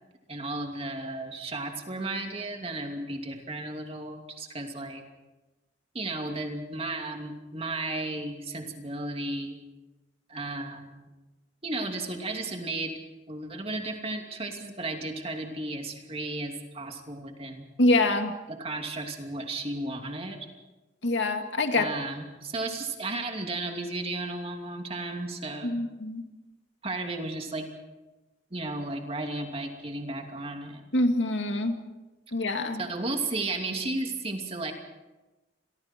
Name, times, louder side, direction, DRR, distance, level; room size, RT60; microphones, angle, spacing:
voice 1, 0.3-5.0 5.9-9.6 10.3-11.1 11.6-13.0 13.3-17.7 18.5-20.5 21.7-25.8 26.8-27.7 28.5-30.9 32.8-34.7, right 2 dB, 30° right, 3 dB, 2.7 m, -34 dB
voice 2, 17.8-18.4 21.0-21.9 25.6-26.2 30.9-31.8 32.3-32.8, left 2 dB, 90° left, 5 dB, 2.3 m, -25 dB
29.0 x 23.5 x 4.5 m, 1.1 s
head